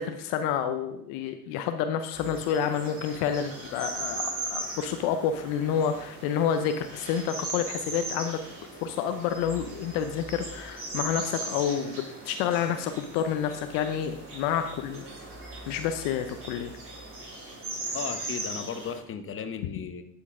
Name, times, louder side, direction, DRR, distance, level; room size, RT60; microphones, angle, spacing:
voice 1, 0.0-4.2 4.5-8.4 8.8-15.0 15.7-16.7, left 8 dB, 70° left, 8 dB, 0.7 m, -29 dB
sound 1, 2.1-19.0, right 2 dB, 35° right, 3.0 m, -38 dB
voice 2, 17.9-20.0, left 7 dB, 35° left, 8 dB, 1.0 m, -35 dB
10.5 x 4.5 x 3.7 m, 0.72 s
hypercardioid pair, 75°, 38 cm